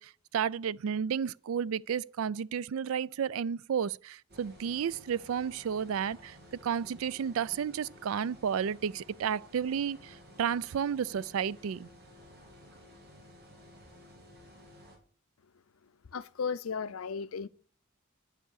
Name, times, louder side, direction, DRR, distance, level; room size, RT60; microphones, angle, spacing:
voice 1, 0.0-6.4 6.6-11.9, right 7 dB, 75° right, 0.4 m, -32 dB
sound 1, 4.3-15.0, equal, 50° right, 3.2 m, -54 dB
voice 2, 16.1-17.5, left 5 dB, 85° left, 0.5 m, -35 dB
9.4 x 7.3 x 6.3 m
head